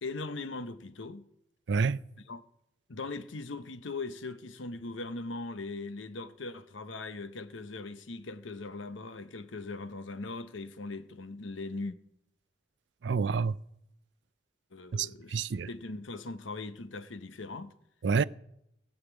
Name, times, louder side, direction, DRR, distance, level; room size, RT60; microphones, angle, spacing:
voice 1, 0.0-1.3 2.3-2.4 2.9-12.0 14.7-17.7, left 3 dB, 90° left, 0.9 m, -40 dB
voice 2, 1.7-2.0 13.0-13.6 14.9-15.7 18.0-18.2, right 5 dB, 70° right, 0.4 m, -28 dB
18.0 x 6.6 x 8.1 m
head